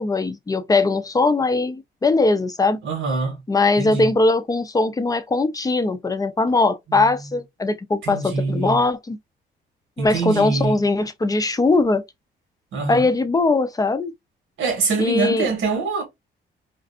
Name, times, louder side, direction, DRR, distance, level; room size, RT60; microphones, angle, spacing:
voice 1, 0.0-2.8 3.5-9.2 10.0-12.0 12.9-14.1 15.0-15.5, left 3 dB, 20° left, 0.5 m, -20 dB
voice 2, 2.8-3.4 3.8-4.1 6.9-7.1 8.0-8.8 10.0-10.8 12.7-13.1 14.6-16.0, right 4 dB, 80° right, 1.3 m, -24 dB
2.5 x 2.4 x 2.4 m
cardioid pair, 90°, 20 cm